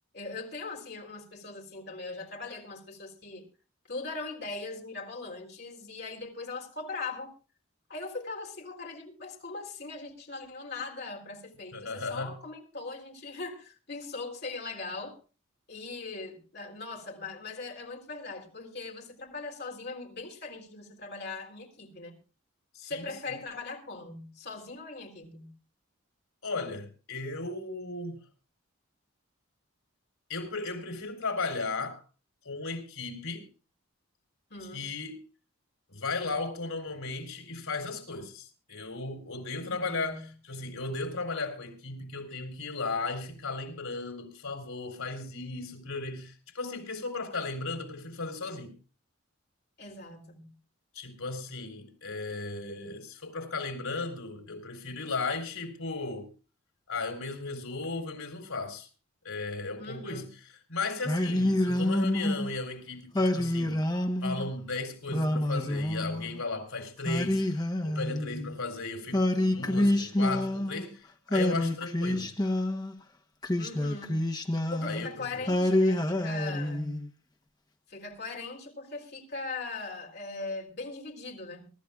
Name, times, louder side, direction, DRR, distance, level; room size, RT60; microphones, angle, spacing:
voice 1, 0.1-3.5 3.9-7.3 7.9-15.2 15.7-22.2 22.8-25.5 34.5-34.9 39.5-40.3 49.8-50.5 59.8-60.3 73.6-74.2 74.7-77.0 77.9-81.7, left 3 dB, 50° left, 3.6 m, -40 dB
voice 2, 11.7-12.4 22.7-23.1 26.4-28.2 30.3-32.0 32.5-33.5 34.7-35.2 35.9-48.8 50.9-56.3 56.9-58.9 59.2-63.8 64.2-72.3 74.8-75.4, left 3 dB, 85° left, 3.8 m, -36 dB
Singing, 61.0-62.5 63.1-64.5 65.1-66.4 67.0-68.6 69.1-70.9 71.3-72.9 73.4-75.1 75.5-77.1, left 1 dB, 20° left, 1.0 m, -27 dB
23.5 x 13.0 x 2.4 m
head